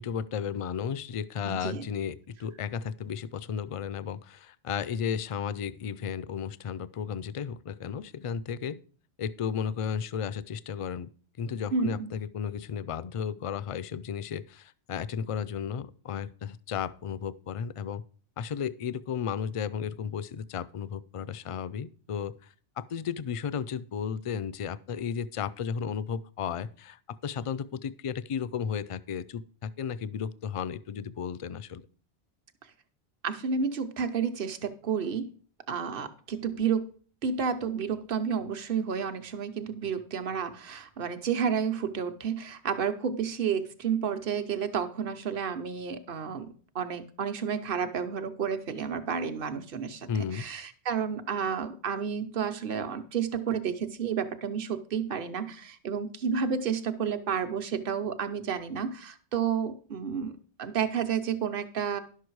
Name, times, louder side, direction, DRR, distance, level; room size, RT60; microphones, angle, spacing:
voice 1, 0.0-8.8 9.2-11.1 11.4-18.0 18.4-31.8 50.1-50.5, left 7 dB, 55° left, 17 dB, 0.3 m, -34 dB
voice 2, 1.4-1.9 11.7-12.1 33.2-35.3 35.7-36.9 37.2-62.0, right 7 dB, 55° right, 9 dB, 1.1 m, -31 dB
11.5 x 6.7 x 4.6 m, 0.43 s
omnidirectional pair, 1.1 m